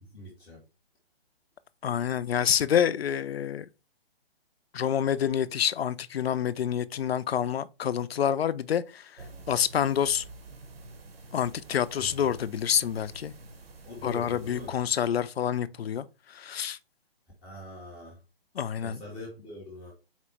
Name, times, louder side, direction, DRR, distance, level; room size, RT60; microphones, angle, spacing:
voice 1, 0.0-0.6 12.0-12.3 13.8-14.8 17.4-18.2 18.8-19.9, left 1 dB, 5° left, 0.4 m, -43 dB
voice 2, 1.8-3.7 4.7-9.1 9.5-10.2 11.3-13.3 14.0-16.8 18.6-19.0, left 9 dB, 80° left, 0.4 m, -27 dB
sound 1, 9.2-14.7, right 2 dB, 70° right, 0.9 m, -48 dB
4.3 x 2.0 x 4.3 m
figure-of-eight pair, 140°, 31 cm